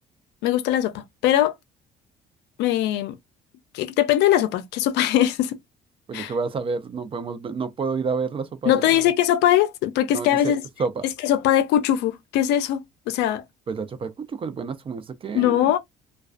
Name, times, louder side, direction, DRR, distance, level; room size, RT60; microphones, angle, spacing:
voice 1, 0.4-1.5 2.6-3.2 3.7-5.6 6.1-6.3 8.7-10.6 11.2-13.4 15.3-15.8, left 12 dB, 85° left, 0.4 m, -21 dB
voice 2, 6.1-9.1 10.1-10.5 10.8-11.1 13.7-15.7, right 5 dB, 30° right, 0.4 m, -29 dB
2.3 x 2.2 x 2.3 m
cardioid pair, 110°, 17 cm